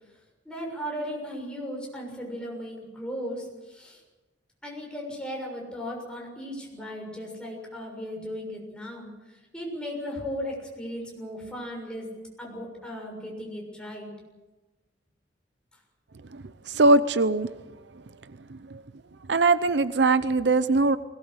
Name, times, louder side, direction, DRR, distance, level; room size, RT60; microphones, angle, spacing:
voice 1, 0.4-4.0 4.6-12.1 12.4-14.1, equal, 5° left, -1 dB, 6.7 m, -36 dB
voice 2, 16.3-17.5 18.5-18.8 19.3-21.0, right 3 dB, 65° right, 13 dB, 0.7 m, -22 dB
21.0 x 19.5 x 8.1 m, 1.1 s
head